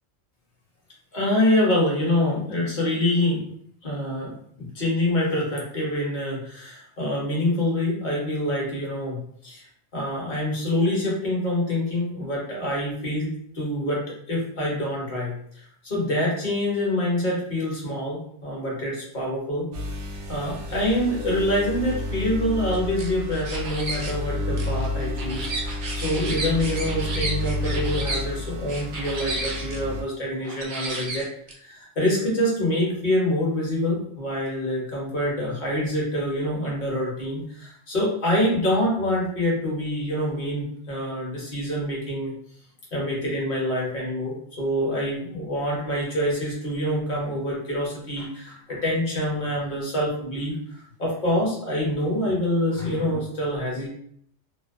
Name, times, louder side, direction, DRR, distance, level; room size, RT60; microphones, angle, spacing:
voice 1, 1.1-3.4 3.8-9.6 9.9-14.0 14.3-19.7 20.3-31.3 31.6-42.3 42.9-50.6 51.0-53.9, left 1 dB, 45° left, -3 dB, 0.9 m, -26 dB
sound 1, 19.7-30.0, left 2 dB, 75° right, 0.9 m, -31 dB
sound 2, 22.7-24.1 24.6-28.2 28.7-29.8 30.4-31.5, right 2 dB, 50° right, 0.6 m, -33 dB
2.5 x 2.0 x 2.4 m, 0.67 s
omnidirectional pair, 1.2 m